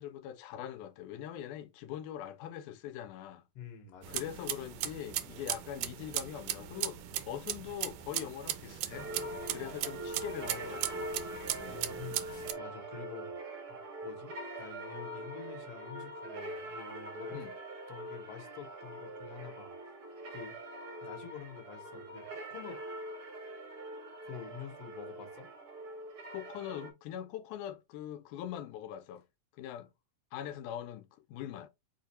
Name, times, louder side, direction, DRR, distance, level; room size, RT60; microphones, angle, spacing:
voice 1, 0.0-3.4 4.1-7.0 7.3-9.1 9.5-11.1 11.6-11.8 17.3-17.5 26.3-29.2 29.6-29.9 30.3-31.7, left 10 dB, 85° left, 2.1 m, -42 dB
voice 2, 3.6-4.2 11.7-13.4 13.7-13.8 14.0-17.4 17.9-19.9 20.3-20.6 21.0-22.8 23.9-25.5, left 7 dB, 60° left, 1.8 m, -48 dB
sound 1, 4.0-12.5, right 12 dB, 90° right, 2.1 m, -38 dB
sound 2, 8.9-26.9, right 1 dB, 60° right, 1.0 m, -43 dB
5.1 x 2.5 x 4.1 m
omnidirectional pair, 3.5 m